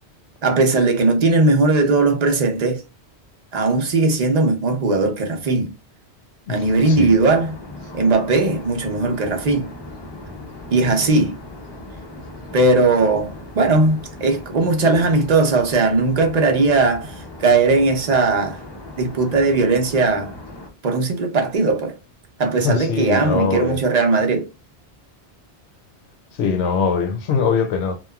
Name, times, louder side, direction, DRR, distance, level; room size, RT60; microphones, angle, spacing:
voice 1, 0.4-2.8 3.5-5.7 6.5-7.5 7.9-9.7 10.7-11.3 12.5-18.6 19.0-20.3 20.8-21.9 22.4-24.5, right 3 dB, 45° right, 0.6 m, -18 dB
voice 2, 6.5-7.1 22.6-23.8 26.3-28.0, left 5 dB, 75° left, 0.8 m, -22 dB
sound 1, 6.6-20.7, left 2 dB, 35° left, 0.5 m, -37 dB
2.9 x 2.3 x 2.2 m
omnidirectional pair, 1.1 m